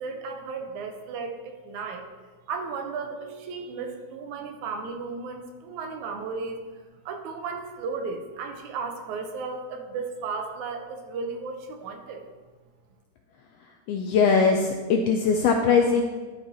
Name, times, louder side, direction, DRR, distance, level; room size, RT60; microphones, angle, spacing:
voice 1, 0.0-2.0 2.5-6.6 7.1-12.2, right 4 dB, 80° right, 5 dB, 2.2 m, -34 dB
voice 2, 13.9-16.0, left 5 dB, 85° left, 3 dB, 1.4 m, -21 dB
11.5 x 4.7 x 4.0 m, 1.4 s
omnidirectional pair, 3.3 m